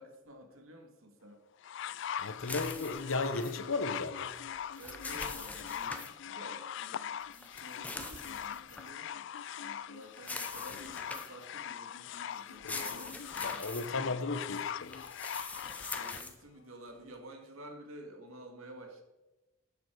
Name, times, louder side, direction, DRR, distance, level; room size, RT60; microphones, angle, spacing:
voice 1, 0.0-1.4 4.8-9.3 9.6-13.9 15.7-19.0, right 1 dB, 85° right, 4 dB, 2.1 m, -52 dB
sound 1, 1.6-16.2 17.1-17.2, left 9 dB, 60° left, 0.3 m, -41 dB
voice 2, 2.2-4.3 12.6-13.0 13.4-15.0 16.0-16.2, left 3 dB, 75° left, 11 dB, 1.0 m, -35 dB
sound 2, 2.4-3.6 4.5-6.1 7.3-8.9 10.2-11.4 12.5-13.9 14.9-16.3, left 2 dB, 5° left, 0.8 m, -44 dB
11.5 x 8.8 x 4.7 m, 1.1 s
head